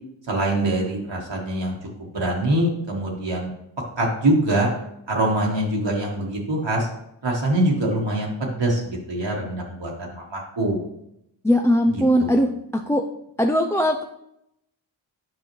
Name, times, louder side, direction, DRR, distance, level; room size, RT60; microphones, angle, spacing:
voice 1, 0.3-1.8 2.1-3.5 4.0-4.7 5.1-6.9 7.2-10.8 11.9-12.3, right 1 dB, 65° right, -1 dB, 1.4 m, -24 dB
voice 2, 11.4-12.5 12.9-13.0 13.4-14.0, equal, 5° left, 3 dB, 0.4 m, -19 dB
7.8 x 5.5 x 3.1 m, 0.79 s
wide cardioid pair, 55°, 46 cm